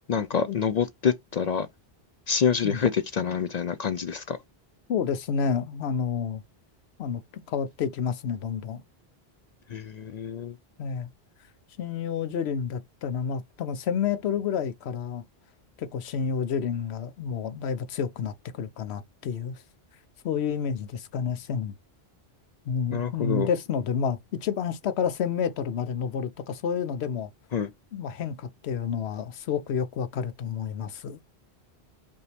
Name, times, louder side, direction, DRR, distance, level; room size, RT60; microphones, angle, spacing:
voice 1, 0.1-1.7 2.3-4.4 9.7-10.6 22.9-23.5 27.5-27.7, left 7 dB, 55° left, 0.5 m, -27 dB
voice 2, 4.9-6.4 7.0-7.2 7.5-8.8 10.8-11.1 11.8-15.2 15.8-19.6 20.2-21.7 22.7-27.3 27.9-31.2, left 7 dB, 80° left, 0.9 m, -29 dB
5.3 x 2.7 x 3.3 m
omnidirectional pair, 1.1 m